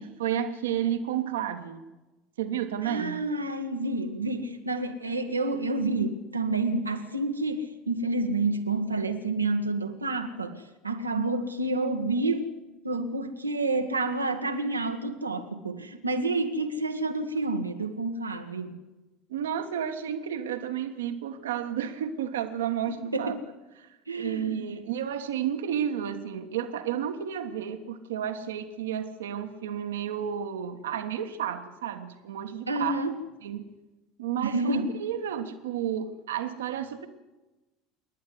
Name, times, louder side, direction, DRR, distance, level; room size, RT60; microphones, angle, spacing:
voice 1, 0.0-1.8 2.4-3.3 19.3-23.4 23.8-23.9 24.2-33.0 33.4-33.6 34.2-37.1, right 9 dB, 75° right, 1.6 m, -31 dB
voice 2, 2.8-12.5 12.8-18.8 23.1-23.4 24.1-24.8 32.7-33.2 34.4-34.9, right 2 dB, 90° right, 1.6 m, -29 dB
27.5 x 11.0 x 9.7 m
figure-of-eight pair, 70°, 0 cm